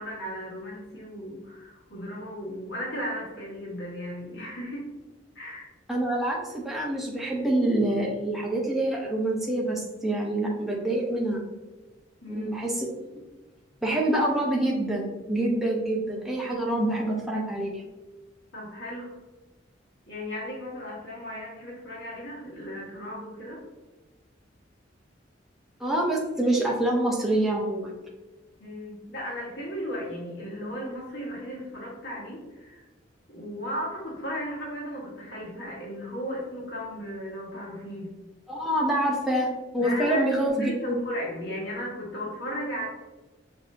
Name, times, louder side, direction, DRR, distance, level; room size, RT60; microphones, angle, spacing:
voice 1, 0.0-4.9 5.3-5.7 12.2-12.5 18.5-19.1 20.1-23.6 28.6-32.9 33.3-38.1 39.8-42.9, equal, 70° left, -5 dB, 1.2 m, -36 dB
voice 2, 5.9-11.4 12.3-12.9 13.8-17.8 25.8-27.9 38.5-41.0, right 1 dB, ahead, -3 dB, 0.6 m, -26 dB
5.9 x 2.6 x 2.6 m, 1.2 s
head